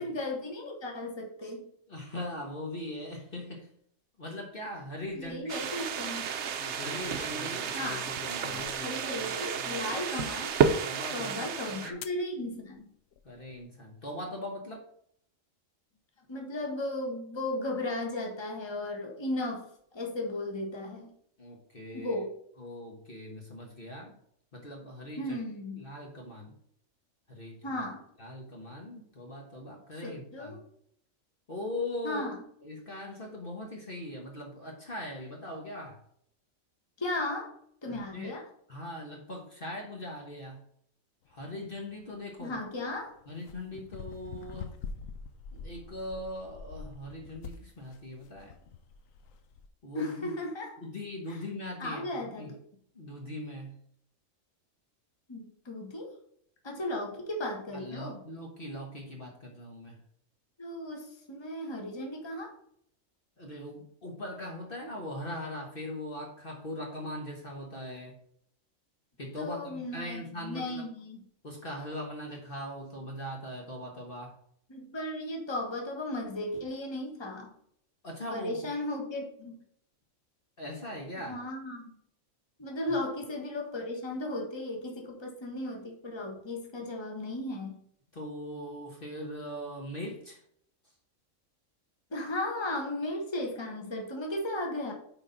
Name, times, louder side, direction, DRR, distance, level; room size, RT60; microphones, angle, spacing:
voice 1, 0.0-1.6 5.1-6.2 7.7-8.0 8.8-10.5 11.1-12.9 16.3-19.7 19.9-21.1 21.9-22.3 25.2-25.8 27.6-28.0 30.0-30.6 32.0-32.4 37.0-37.5 37.8-38.4 42.4-43.1 49.9-50.7 51.3-51.4 51.8-52.6 55.3-56.1 56.6-58.2 60.6-62.5 69.4-71.2 74.7-77.5 78.3-79.6 81.3-81.9 82.6-87.8 92.1-94.9, left 1 dB, 20° left, 1 dB, 1.4 m, -35 dB
voice 2, 1.9-3.7 4.2-5.5 6.7-8.0 8.2-8.7 10.8-12.1 13.2-14.9 21.4-22.1 22.6-24.2 24.5-25.4 25.8-26.5 27.3-27.8 28.2-30.6 31.5-32.3 32.6-36.0 37.9-38.4 38.7-40.6 41.3-42.6 43.3-44.8 45.5-48.5 49.8-50.3 50.8-52.5 52.9-53.8 57.7-60.0 63.4-68.2 69.2-70.9 71.4-74.4 78.0-78.6 80.6-81.4 82.9-83.0 88.1-90.4 90.8-90.9, left 1 dB, 45° left, 0 dB, 1.4 m, -40 dB
sound 1, 4.9-5.3 6.5-9.9 10.5-10.6 12.0-12.2 13.1-13.6, left 8 dB, 65° left, 0.8 m, -46 dB
sound 2, 5.5-11.9, right 7 dB, 65° right, 0.9 m, -31 dB
sound 3, 41.3-49.7, left 5 dB, 80° left, 1.1 m, -45 dB
9.8 x 4.1 x 3.9 m, 0.68 s
omnidirectional pair, 1.4 m